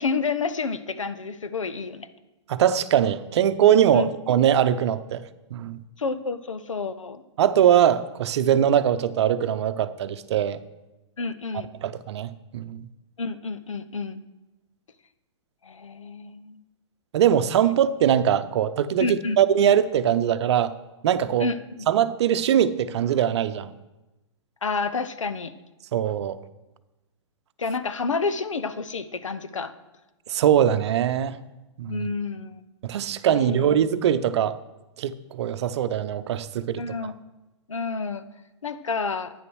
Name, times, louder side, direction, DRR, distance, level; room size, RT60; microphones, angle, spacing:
voice 1, 0.0-2.1 3.9-4.1 6.0-7.2 11.2-11.7 13.2-14.2 15.6-16.6 19.0-19.4 21.4-21.9 24.6-25.5 27.6-29.7 31.9-32.6 33.3-33.8 36.8-37.1 37.7-38.3 38.6-39.3, left 4 dB, 90° left, 13 dB, 0.8 m, -29 dB
voice 2, 2.5-5.2 5.5-5.8 7.4-10.6 11.8-12.9 17.1-20.7 21.0-21.5 21.9-23.7 25.9-26.4 30.3-31.4 31.8-32.1 32.8-34.6 35.0-36.8, right 9 dB, 60° right, 12 dB, 0.7 m, -21 dB
9.7 x 9.2 x 6.3 m, 1.1 s
hypercardioid pair, 120°, 16 cm